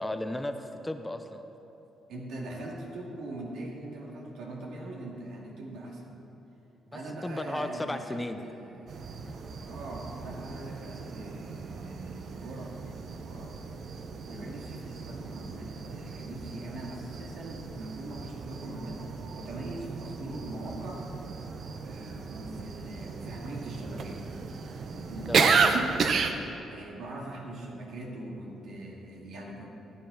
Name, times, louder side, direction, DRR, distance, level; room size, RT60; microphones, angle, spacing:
voice 1, 0.0-1.4 6.9-8.4 9.2-9.5 14.3-14.5 25.3-25.6, left 1 dB, 15° left, 8 dB, 0.6 m, -35 dB
voice 2, 2.1-6.2 6.9-9.1 9.7-13.5 14.2-21.1 21.8-24.4 24.9-25.5 26.7-29.7, right 1 dB, 80° right, -2 dB, 2.0 m, -41 dB
sound 1, 8.9-26.3, right 5 dB, 55° right, 0.7 m, -33 dB
15.0 x 9.0 x 3.9 m, 2.9 s
cardioid pair, 90°, 0 cm